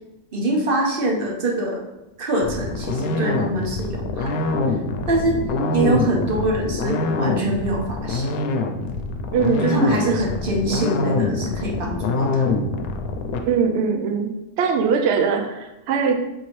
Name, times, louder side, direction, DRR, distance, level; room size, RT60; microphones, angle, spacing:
voice 1, 0.3-1.8 2.2-4.4 5.1-5.4 5.7-8.3 9.6-12.5, right 1 dB, 45° right, 0 dB, 0.8 m, -24 dB
sound 1, 2.4-13.4, left 3 dB, 70° left, 1.0 m, -24 dB
voice 2, 9.3-10.2 13.5-14.3 14.6-16.1, right 5 dB, 75° right, 5 dB, 0.6 m, -21 dB
6.2 x 2.8 x 3.1 m, 0.94 s
omnidirectional pair, 1.6 m